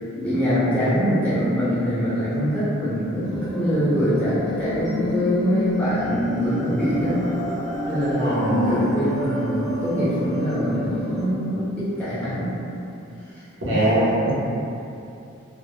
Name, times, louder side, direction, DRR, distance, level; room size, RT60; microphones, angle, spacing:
voice 1, 0.1-7.2 7.9-12.5 13.6-13.9, equal, 5° left, -13 dB, 0.7 m, -23 dB
sound 1, 3.2-11.2, equal, 20° right, 0.3 m, -30 dB
voice 2, 8.1-8.8 13.6-14.3, right 1 dB, 60° right, -8 dB, 0.6 m, -22 dB
2.1 x 2.1 x 2.9 m, 2.7 s
head